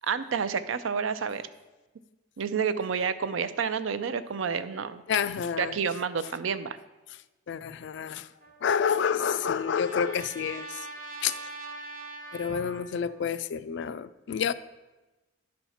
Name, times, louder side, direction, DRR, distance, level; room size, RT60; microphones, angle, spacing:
voice 1, 0.0-1.4 2.4-5.0 5.6-6.8, right 6 dB, 75° right, 12 dB, 0.5 m, -29 dB
voice 2, 5.1-5.8 7.5-8.3 8.6-10.9 11.2-11.5 12.3-14.5, left 7 dB, 60° left, 15 dB, 0.3 m, -29 dB
Trumpet, 8.4-13.2, right 3 dB, 40° right, 0.7 m, -43 dB
11.0 x 4.3 x 5.6 m, 1.1 s
head